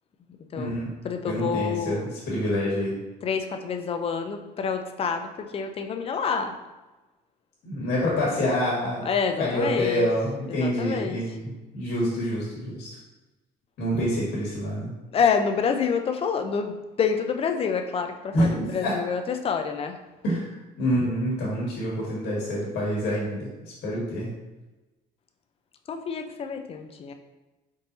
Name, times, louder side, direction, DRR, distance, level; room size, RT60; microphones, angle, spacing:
voice 1, 0.5-0.9 1.2-2.9 7.6-9.0 9.4-12.9 13.8-14.9 18.3-18.9 20.2-23.5 23.8-24.3, equal, 75° left, -5 dB, 1.5 m, -27 dB
voice 2, 1.0-2.1 3.2-6.6 9.0-10.1 10.6-11.2 15.1-20.0 25.9-27.1, left 6 dB, 35° left, 6 dB, 0.4 m, -27 dB
4.0 x 3.7 x 2.6 m, 1.1 s
cardioid pair, 110°, 17 cm